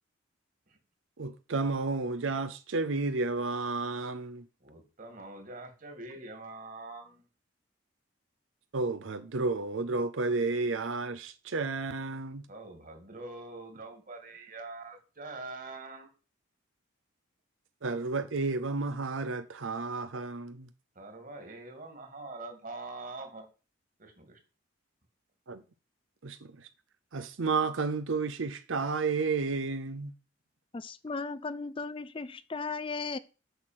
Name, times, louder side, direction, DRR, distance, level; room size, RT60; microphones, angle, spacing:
voice 1, 1.2-4.5 8.7-12.5 17.8-20.7 25.5-25.6 26.2-26.7 27.1-30.1, right 3 dB, 75° right, 0.7 m, -32 dB
voice 2, 4.6-7.3 12.5-16.1 21.0-23.4 24.0-24.4, right 2 dB, 45° right, 2.4 m, -44 dB
voice 3, 30.7-33.2, left 4 dB, 25° left, 0.4 m, -36 dB
8.0 x 6.4 x 7.6 m
head